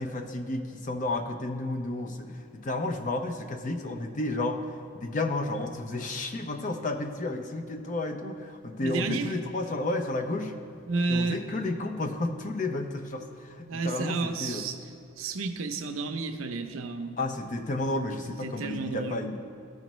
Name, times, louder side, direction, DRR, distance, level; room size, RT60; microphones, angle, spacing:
voice 1, 0.0-4.6 4.9-10.5 11.1-14.7 17.2-19.4, left 2 dB, 40° left, 5 dB, 0.5 m, -32 dB
voice 2, 8.8-9.4 10.9-11.4 13.7-14.8 15.2-17.2 18.3-19.3, right 3 dB, 85° right, 7 dB, 0.6 m, -31 dB
15.0 x 5.2 x 3.1 m, 2.4 s
head